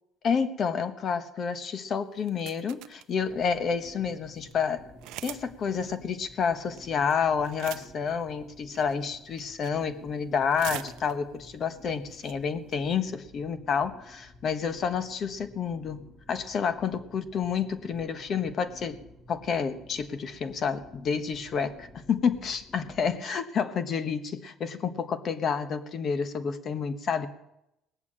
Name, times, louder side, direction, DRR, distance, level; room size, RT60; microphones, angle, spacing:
voice 1, 0.2-4.9 5.2-19.0 19.3-27.3, left 6 dB, 45° left, 11 dB, 1.2 m, -29 dB
sound 1, 2.2-3.1 3.7-3.8 4.0-4.1 4.4-4.5 5.0-5.5 5.7-5.8 6.8-7.1 7.4-8.1 8.7-9.0 9.4-9.8 10.2-11.4 11.8-11.9 12.1-12.3 12.7-12.9, right 16 dB, 80° right, 0.6 m, -41 dB
sound 2, 3.2-23.2, left 1 dB, 20° left, 3.0 m, -53 dB
19.0 x 7.2 x 8.7 m, 0.87 s
cardioid pair, 130°, 0 cm